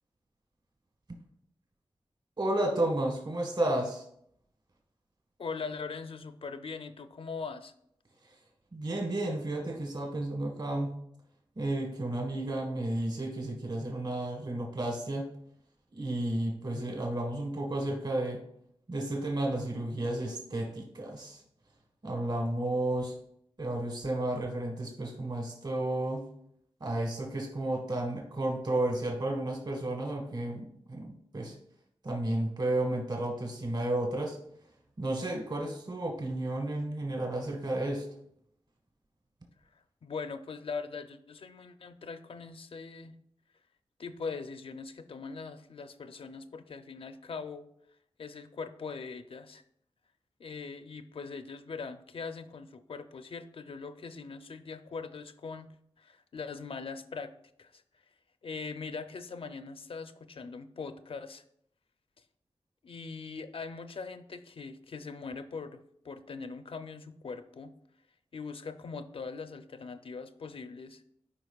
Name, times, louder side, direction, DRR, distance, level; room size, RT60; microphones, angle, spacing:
voice 1, 2.4-4.0 8.7-11.0 11.6-15.3 15.9-18.4 18.9-21.4 22.0-23.1 23.6-26.2 26.8-31.5 32.0-34.4 35.0-38.0, right 1 dB, 45° right, 1 dB, 1.4 m, -32 dB
voice 2, 5.4-7.7 40.0-43.1 44.0-47.6 48.2-49.6 50.4-55.7 56.0-57.3 57.6-57.8 58.4-61.4 62.8-67.7 68.3-71.0, left 4 dB, 65° left, 10 dB, 0.5 m, -41 dB
12.5 x 5.0 x 2.3 m, 0.72 s
wide cardioid pair, 85°, 10 cm